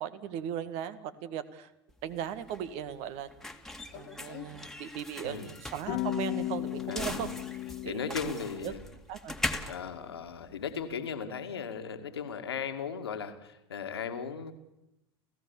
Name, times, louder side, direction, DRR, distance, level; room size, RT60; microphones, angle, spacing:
voice 1, 0.0-1.7 2.0-3.3 3.9-7.3 7.8-8.2 8.6-8.7 9.1-9.4, right 9 dB, 55° right, 12 dB, 1.9 m, -37 dB
sound 1, 1.9-11.0, left 1 dB, 5° left, 2.0 m, -41 dB
sound 2, 3.9-4.5 5.9-7.9, left 15 dB, 55° left, 1.8 m, -35 dB
voice 2, 5.2-5.6 6.9-7.2 7.8-8.8 9.6-14.5, left 6 dB, 80° left, 6 dB, 2.2 m, -37 dB
30.0 x 15.5 x 7.3 m, 0.91 s
figure-of-eight pair, 80°, 13 cm